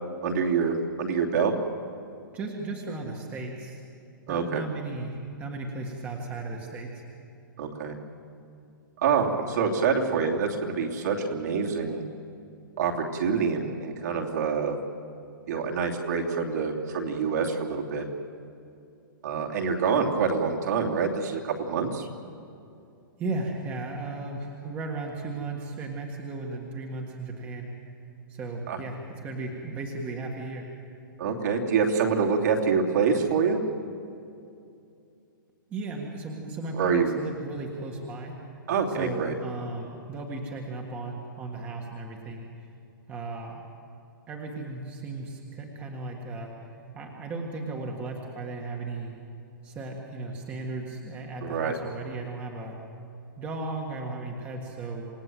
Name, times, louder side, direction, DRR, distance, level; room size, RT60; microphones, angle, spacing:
voice 1, 0.2-0.7 1.0-1.5 4.3-4.6 7.6-7.9 9.0-12.0 12.8-14.8 15.5-18.0 19.2-22.1 28.7-28.8 31.2-33.6 36.7-37.1 38.7-39.3 51.4-51.7, right 5 dB, 50° right, 0 dB, 3.0 m, -26 dB
voice 2, 2.3-3.8 4.3-7.0 23.2-27.7 28.3-30.7 35.7-38.4 38.9-42.5 43.1-43.6 44.3-46.7 46.9-49.2 49.6-52.8 53.4-55.1, right 3 dB, 15° right, 0 dB, 1.7 m, -35 dB
28.0 x 18.0 x 7.8 m, 2.6 s
hypercardioid pair, 170°, 11 cm